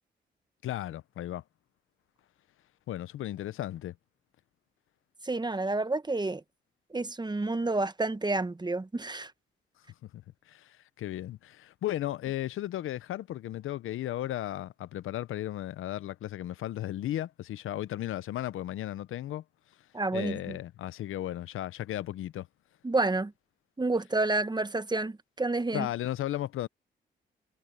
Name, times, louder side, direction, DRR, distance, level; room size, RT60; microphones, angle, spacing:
voice 1, 0.6-1.4 2.9-3.9 10.5-19.4 20.1-22.5 25.7-26.7, left 13 dB, 85° left, 0.7 m, -35 dB
voice 2, 5.2-6.4 6.9-9.3 19.9-20.6 22.8-23.3 23.8-25.9, right 2 dB, 20° right, 1.1 m, -29 dB
cardioid pair, 60°, 20 cm